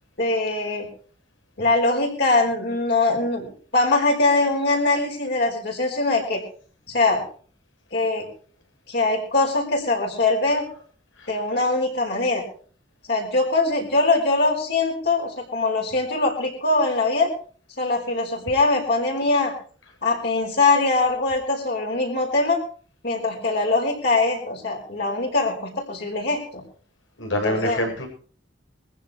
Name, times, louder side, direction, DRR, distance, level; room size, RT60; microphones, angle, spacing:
voice 1, 0.2-0.9 1.6-3.5 3.7-6.4 6.9-7.2 7.9-8.3 8.9-10.7 11.3-12.4 13.1-17.3 17.8-19.5 20.0-22.6 23.0-26.6 27.3-27.8, left 3 dB, 55° left, 0 dB, 5.2 m, -22 dB
voice 2, 27.2-28.1, left 1 dB, 90° left, 2 dB, 6.9 m, -25 dB
23.0 x 15.0 x 3.1 m, 0.43 s
head